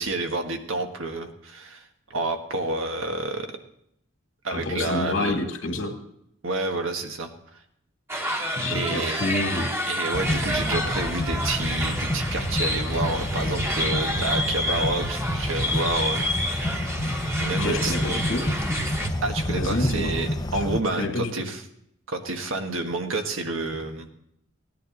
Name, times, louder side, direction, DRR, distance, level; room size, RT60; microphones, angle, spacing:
voice 1, 0.0-1.8 2.1-3.5 4.4-5.3 6.4-7.3 8.7-9.4 9.9-16.2 17.4-17.9 19.2-21.6 22.1-24.1, right 2 dB, 90° right, 5 dB, 1.5 m, -29 dB
voice 2, 4.5-5.9 8.6-9.7 17.6-18.4 19.5-20.1 20.5-20.6 21.0-21.3, left 2 dB, 80° left, 3 dB, 2.3 m, -28 dB
sound 1, 8.1-19.1, equal, 15° right, 1.2 m, -29 dB
sound 2, 10.1-20.8, left 1 dB, 20° left, 0.6 m, -29 dB
sound 3, 10.7-19.1, right 5 dB, 45° right, 0.4 m, -37 dB
16.5 x 10.5 x 3.9 m, 0.74 s
head